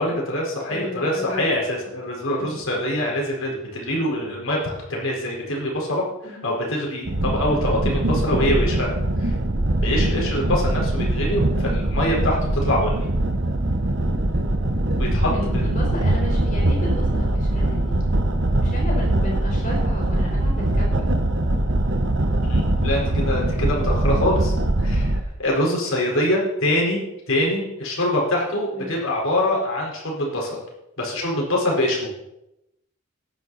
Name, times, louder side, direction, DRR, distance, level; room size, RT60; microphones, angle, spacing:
voice 1, 0.0-9.3 9.8-13.1 15.0-15.7 22.4-24.5 24.8-25.1 25.4-27.0 27.3-30.6 31.0-32.1, left 1 dB, 65° left, -2 dB, 4.4 m, -24 dB
voice 2, 0.7-1.5 2.4-2.6 6.2-6.4 10.0-10.3 15.3-18.0 18.6-21.1 23.0-23.8 28.7-28.9, left 1 dB, 35° left, -1 dB, 4.7 m, -33 dB
sound 1, 7.1-25.2, right 1 dB, 55° right, 1.2 m, -22 dB
14.5 x 11.0 x 4.1 m, 0.88 s
head